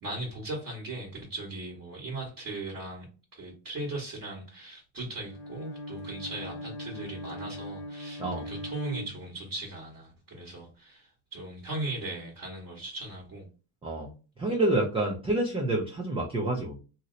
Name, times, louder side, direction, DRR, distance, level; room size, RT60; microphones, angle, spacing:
voice 1, 0.0-3.1 3.3-13.4, right 2 dB, 35° right, -2 dB, 1.3 m, -38 dB
Bowed string instrument, 5.2-9.8, left 1 dB, 70° left, 1.0 m, -40 dB
voice 2, 13.8-16.8, right 2 dB, 15° right, -2 dB, 0.3 m, -28 dB
2.8 x 2.0 x 3.7 m, 0.34 s
cardioid pair, 125°, 50 cm